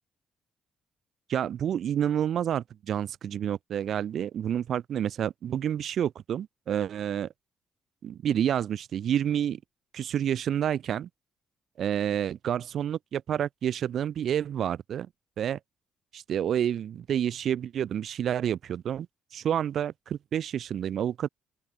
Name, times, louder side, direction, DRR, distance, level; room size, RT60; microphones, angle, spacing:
voice 1, 1.3-7.3 8.0-9.6 9.9-11.1 11.8-15.1 15.4-15.6 16.1-19.1 19.3-21.3, right 9 dB, 65° right, 0.7 m, -29 dB
open air
cardioid pair, 90°, 0 cm